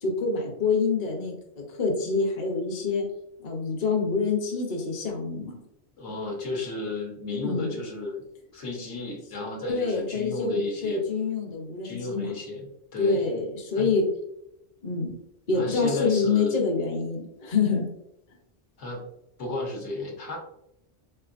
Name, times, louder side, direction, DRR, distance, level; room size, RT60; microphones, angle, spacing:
voice 1, 0.0-3.1 3.4-5.6 7.4-7.8 9.7-12.3 13.0-14.1 14.8-15.1 15.5-17.9, left 4 dB, 40° left, 1 dB, 0.8 m, -26 dB
voice 2, 6.0-8.2 8.5-11.0 11.8-13.3 13.7-13.9 15.5-16.6 18.8-19.0 19.4-20.4, left 2 dB, 75° left, -1 dB, 1.2 m, -33 dB
3.6 x 3.4 x 2.4 m, 0.81 s
omnidirectional pair, 1.2 m